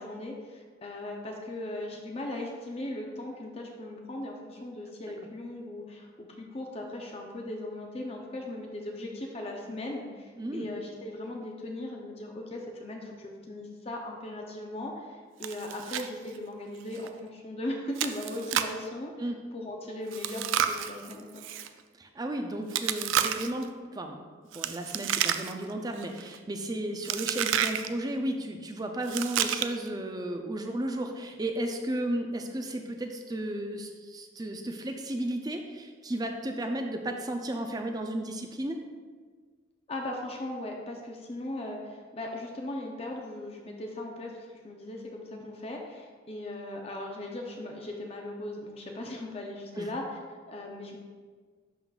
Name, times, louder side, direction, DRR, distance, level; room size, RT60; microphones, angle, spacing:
voice 1, 0.0-21.5 39.9-50.2 50.5-51.0, left 1 dB, 30° left, 1 dB, 0.6 m, -38 dB
Chewing mastication, 15.4-16.1 16.4-16.5 17.0-17.1 18.0-18.8 20.1-21.7 22.7-23.6 24.5-25.7 26.0-26.4 27.1-27.9 29.0-29.9, right 10 dB, 85° right, 0.3 m, -30 dB
voice 2, 22.0-24.2 24.5-38.8 49.8-49.9, right 1 dB, 20° right, 4 dB, 0.4 m, -34 dB
11.0 x 3.8 x 2.4 m, 1.5 s
head